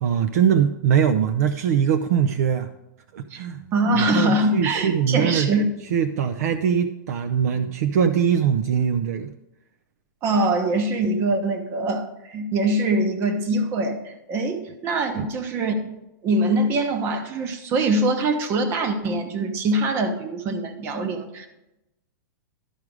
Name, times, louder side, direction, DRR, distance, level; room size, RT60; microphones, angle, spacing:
voice 1, 0.0-2.7 3.1-5.5 5.9-9.3 15.2-15.3, right 8 dB, 50° right, 10 dB, 0.5 m, -22 dB
voice 2, 3.7-5.7 10.2-15.8 16.2-21.5, right 2 dB, 20° right, 8 dB, 0.8 m, -23 dB
12.0 x 4.9 x 4.8 m, 0.92 s
supercardioid pair, 170°, 11 cm